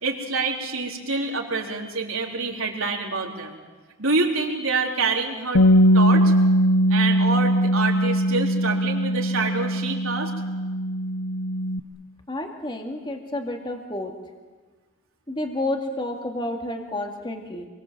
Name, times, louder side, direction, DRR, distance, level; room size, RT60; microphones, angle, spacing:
voice 1, 0.0-3.6 4.0-5.6 5.9-6.3 6.9-10.3, right 3 dB, 80° right, 1 dB, 4.0 m, -26 dB
Bass guitar, 5.5-11.8, equal, 85° left, 0.9 m, -20 dB
voice 2, 12.3-14.1 15.3-17.7, left 1 dB, 25° left, 3 dB, 2.3 m, -30 dB
27.5 x 23.0 x 7.8 m, 1.3 s
head